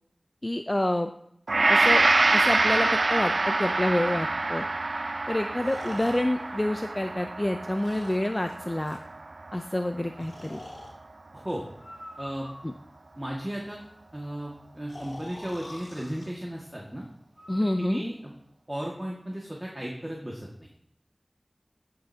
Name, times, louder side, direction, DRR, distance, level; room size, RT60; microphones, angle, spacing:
voice 1, 0.4-1.1 1.7-2.1 2.3-4.6 5.3-9.0 9.5-10.6 12.6-12.7 17.5-18.0, left 1 dB, 30° left, 6 dB, 0.6 m, -28 dB
Gong, 1.5-9.8 10.2-10.4, right 2 dB, 80° right, 0.3 m, -26 dB
Breathing, 3.7-3.8 5.6-7.3 7.7-9.1 10.2-11.0 11.7-12.9 14.9-16.3 17.3-17.8, left 1 dB, 85° left, 3.8 m, -45 dB
voice 2, 11.3-11.6 12.2-12.5 13.2-13.8 14.1-17.1 17.8-18.3 18.7-20.7, equal, 20° right, -2 dB, 1.9 m, -35 dB
15.0 x 7.7 x 2.8 m, 0.73 s
wide cardioid pair, 50°, 0 cm